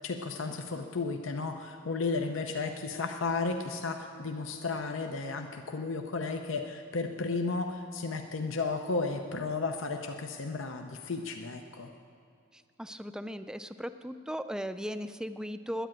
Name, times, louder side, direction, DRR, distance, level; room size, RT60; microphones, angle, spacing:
voice 1, 0.0-11.9, left 3 dB, 75° left, 4 dB, 0.7 m, -33 dB
voice 2, 12.5-15.9, equal, 5° right, 11 dB, 0.4 m, -37 dB
10.0 x 9.9 x 9.0 m, 2.5 s
head